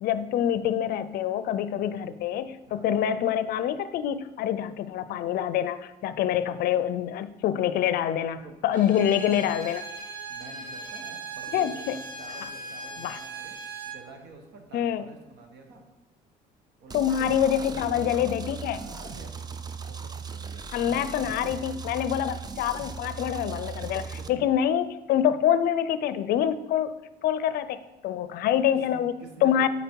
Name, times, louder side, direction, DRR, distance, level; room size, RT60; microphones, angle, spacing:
voice 1, 0.0-9.8 11.5-12.0 13.0-13.2 14.7-15.0 16.9-18.8 20.7-24.0 24.3-26.9 27.2-29.7, left 10 dB, 65° left, 13 dB, 0.4 m, -26 dB
voice 2, 8.4-9.6 10.3-13.6 13.9-15.8 16.8-17.3 17.5-18.3 18.7-20.7 21.0-21.6 24.0-24.5 28.7-29.7, right 4 dB, 85° right, 3 dB, 1.3 m, -47 dB
Bowed string instrument, 8.7-14.0, right 3 dB, 50° right, 1.5 m, -39 dB
sound 1, 16.9-24.3, right 5 dB, 25° right, 0.5 m, -38 dB
9.2 x 4.0 x 4.5 m, 1.0 s
cardioid pair, 110°, 17 cm